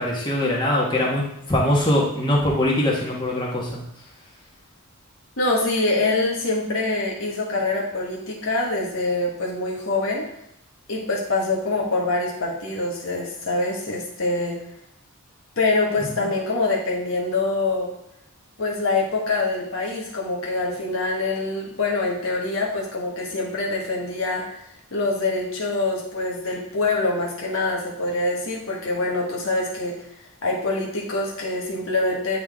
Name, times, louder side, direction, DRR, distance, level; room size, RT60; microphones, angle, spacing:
voice 1, 0.0-3.8, left 1 dB, 20° left, -3 dB, 1.5 m, -22 dB
voice 2, 5.4-10.3 10.9-14.6 15.6-17.9 18.6-24.6 24.9-29.9 30.4-32.4, left 2 dB, 70° left, -3 dB, 1.4 m, -25 dB
9.5 x 3.9 x 3.6 m, 0.77 s
head